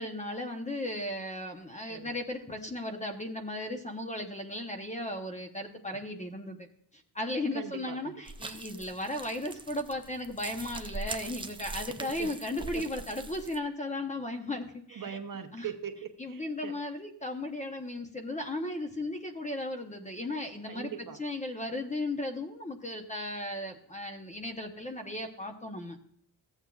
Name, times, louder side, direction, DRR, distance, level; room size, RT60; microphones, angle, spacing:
voice 1, 0.0-6.7 6.9-15.2 15.5-15.6 16.2-20.9 21.2-26.0, left 1 dB, 15° left, 4 dB, 0.8 m, -36 dB
voice 2, 7.5-8.2 12.0-12.3 12.6-13.0 14.9-16.8 20.7-21.2, right 8 dB, 50° right, 6 dB, 0.9 m, -41 dB
sound 1, 8.3-13.6, right 3 dB, 15° right, 0.4 m, -42 dB
14.5 x 8.1 x 2.4 m, 0.67 s
wide cardioid pair, 150°, 43 cm